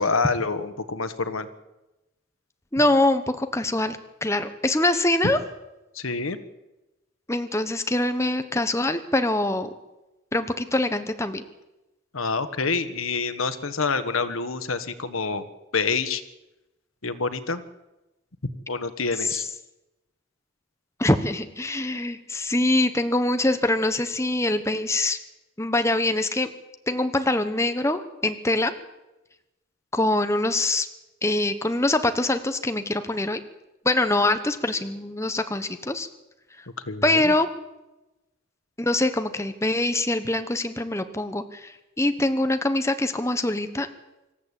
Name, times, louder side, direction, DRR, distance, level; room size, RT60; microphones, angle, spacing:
voice 1, 0.0-1.5 5.9-6.4 12.1-15.5 15.7-16.2 17.0-17.6 18.7-19.5 36.9-37.3, left 4 dB, 90° left, 13 dB, 1.5 m, -27 dB
voice 2, 2.7-5.4 7.3-9.7 10.3-11.4 19.2-19.4 21.0-25.2 25.6-26.5 26.9-28.7 29.9-30.9 31.2-33.4 33.8-36.1 37.0-37.5 38.8-43.9, left 2 dB, 15° left, 9 dB, 1.1 m, -24 dB
25.5 x 14.5 x 8.4 m, 1.0 s
head